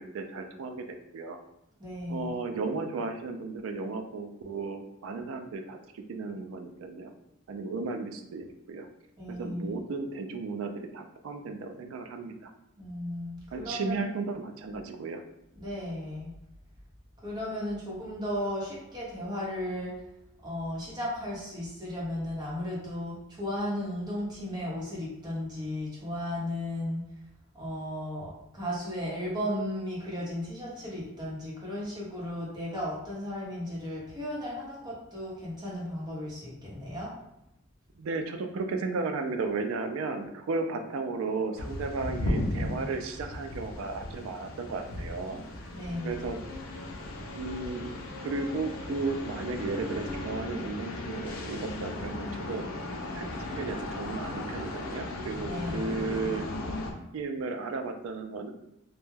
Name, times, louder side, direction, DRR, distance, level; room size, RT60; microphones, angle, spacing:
voice 1, 0.0-1.4 2.1-7.1 7.5-8.9 9.3-12.5 13.5-15.2 38.0-45.4 46.0-46.4 47.3-47.9 48.2-52.6 53.1-56.5 57.1-58.5, right 3 dB, 80° right, 6 dB, 0.3 m, -34 dB
voice 2, 1.8-2.3 9.2-9.7 12.8-14.0 15.6-16.3 17.2-20.0 20.4-27.0 27.5-37.1 45.7-46.2 55.4-55.9, left 1 dB, 20° right, -6 dB, 0.8 m, -35 dB
sound 1, 41.5-56.9, left 1 dB, 85° left, 0.5 m, -36 dB
2.2 x 2.1 x 3.1 m, 0.84 s
head